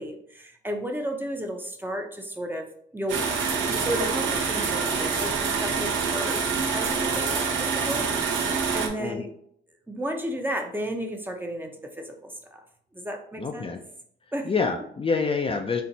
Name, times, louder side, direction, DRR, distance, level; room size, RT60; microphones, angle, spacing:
voice 1, 0.0-2.7 2.9-9.3 9.9-12.6 12.9-13.7 14.3-14.5, equal, 10° right, 3 dB, 0.7 m, -33 dB
sound 1, 3.1-8.9, right 5 dB, 80° right, 0.9 m, -26 dB
voice 2, 13.4-13.8 14.4-15.8, left 4 dB, 30° left, 3 dB, 0.5 m, -27 dB
4.3 x 2.8 x 4.0 m, 0.66 s
cardioid pair, 90°, 20 cm